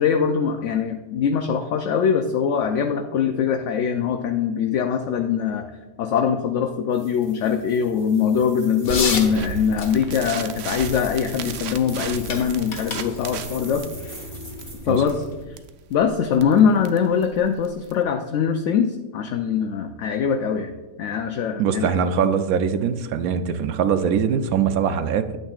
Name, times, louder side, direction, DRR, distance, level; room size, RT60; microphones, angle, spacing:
voice 1, 0.0-5.7 6.0-13.8 14.8-15.6 15.9-20.7 21.0-21.9, left 7 dB, 65° left, 5 dB, 0.8 m, -22 dB
sound 1, 6.9-15.2, right 1 dB, 15° right, 1.3 m, -45 dB
sound 2, 8.8-15.4, left 3 dB, 85° left, 1.6 m, -33 dB
sound 3, 8.9-18.0, right 6 dB, 65° right, 0.7 m, -36 dB
voice 2, 21.6-25.4, right 7 dB, 85° right, 10 dB, 1.1 m, -22 dB
8.9 x 8.7 x 2.4 m, 1.1 s
omnidirectional pair, 1.5 m